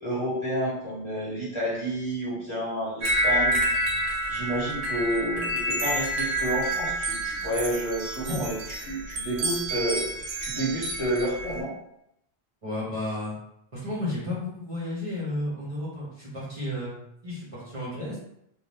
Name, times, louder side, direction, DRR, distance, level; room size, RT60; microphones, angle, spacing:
voice 1, 0.0-3.6 4.3-10.0 10.4-11.7, right 1 dB, 30° left, -9 dB, 1.1 m, -30 dB
sound 1, 3.0-11.6, right 1 dB, 80° right, 1.0 m, -28 dB
voice 2, 12.6-13.3 13.7-16.9 17.2-18.2, left 1 dB, 35° right, -8 dB, 0.8 m, -32 dB
2.6 x 2.3 x 3.3 m, 0.78 s
omnidirectional pair, 1.1 m